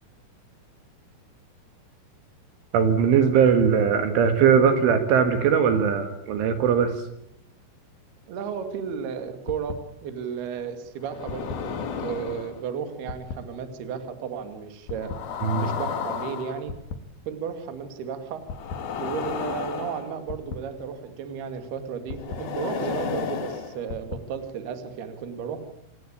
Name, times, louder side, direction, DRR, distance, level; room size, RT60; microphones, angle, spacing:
voice 1, 2.7-6.9 15.4-15.7, right 7 dB, 75° right, 8 dB, 4.3 m, -20 dB
voice 2, 8.3-15.1 15.6-16.7 17.3-18.4 19.0-25.6, right 7 dB, 60° right, 8 dB, 4.0 m, -33 dB
sound 1, 9.5-9.7 11.0-12.6 13.1-13.3 14.9-16.9 18.5-20.6 22.1-24.2, left 6 dB, 55° left, 3.5 m, -32 dB
26.5 x 20.5 x 8.8 m, 0.75 s
omnidirectional pair, 5.7 m